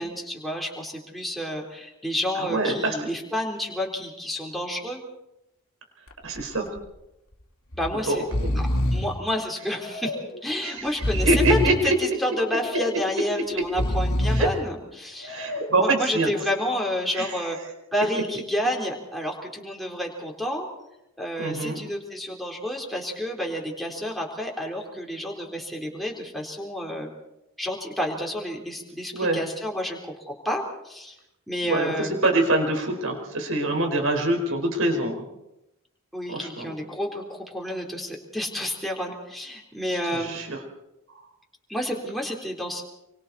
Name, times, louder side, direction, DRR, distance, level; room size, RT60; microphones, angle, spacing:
voice 1, 0.0-5.0 7.7-10.2 10.4-17.6 17.9-20.7 21.2-27.1 27.6-31.2 31.5-32.1 36.1-40.4 41.7-42.8, equal, ahead, -1 dB, 3.7 m, -30 dB
voice 2, 2.4-2.9 6.2-6.7 8.1-8.5 10.6-10.7 11.1-12.0 14.3-14.5 15.3-16.3 17.1-17.3 21.4-21.8 29.1-29.4 31.7-35.2 36.3-36.7 40.1-40.6, right 2 dB, 70° right, 3 dB, 4.9 m, -24 dB
Breathing, 6.1-6.4 6.8-6.9 7.7-7.9 8.2-9.2 9.8-10.4 10.9-11.9 12.5-13.1 13.6-14.6 15.2-15.9, left 1 dB, 80° left, 2.6 m, -27 dB
27.5 x 24.5 x 4.3 m, 0.89 s
head